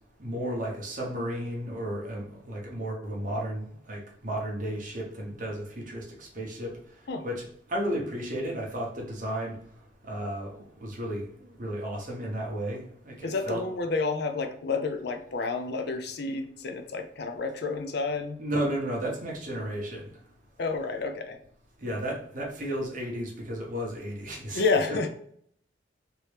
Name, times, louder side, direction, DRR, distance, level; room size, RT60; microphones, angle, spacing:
voice 1, 0.2-6.7 7.2-9.6 10.0-13.6 18.4-20.1 21.8-24.6, right 1 dB, 45° right, -2 dB, 1.0 m, -33 dB
voice 2, 13.2-18.4 20.6-21.4 24.5-25.1, left 4 dB, 55° left, 5 dB, 0.4 m, -30 dB
3.0 x 2.8 x 3.2 m, 0.64 s
head